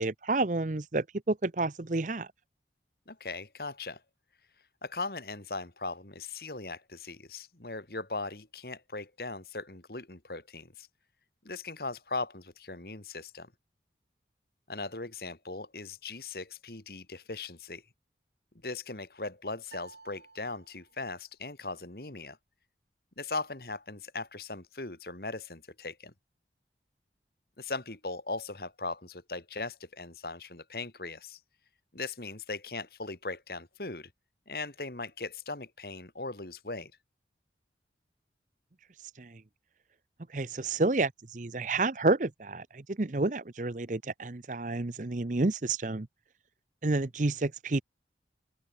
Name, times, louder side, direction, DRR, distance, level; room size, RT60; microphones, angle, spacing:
voice 1, 0.0-2.3 39.2-39.4 40.3-46.1 46.8-47.8, right 2 dB, 45° right, 0.8 m, -30 dB
voice 2, 3.1-4.0 4.8-10.9 11.4-13.5 14.7-17.8 18.6-22.4 23.2-26.1 27.6-31.4 31.9-34.1 34.5-36.9, left 3 dB, 55° left, 2.0 m, -39 dB
sound 1, 19.7-21.2, right 4 dB, 75° right, 4.5 m, -53 dB
open air
head